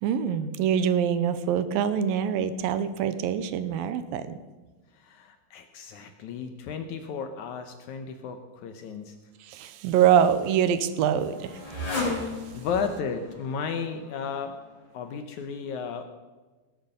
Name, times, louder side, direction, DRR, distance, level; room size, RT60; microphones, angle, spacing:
voice 1, 0.0-4.4 9.4-11.6 11.9-12.1, right 8 dB, 75° right, 12 dB, 2.4 m, -25 dB
voice 2, 4.9-9.2 12.5-14.5 14.9-16.1, left 6 dB, 80° left, 7 dB, 1.7 m, -34 dB
Motorcycle, 9.8-15.2, left 3 dB, 35° left, 5.6 m, -37 dB
19.0 x 8.0 x 6.7 m, 1.2 s
omnidirectional pair, 4.5 m